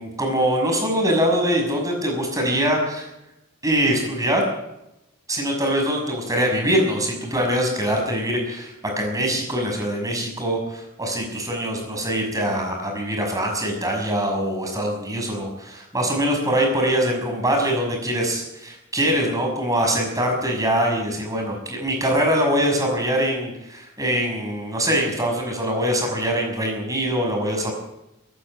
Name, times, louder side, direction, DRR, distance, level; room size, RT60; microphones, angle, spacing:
voice 1, 0.0-3.1 3.6-4.5 5.3-27.7, equal, 15° right, 1 dB, 6.0 m, -23 dB
24.5 x 11.5 x 9.2 m, 0.90 s
head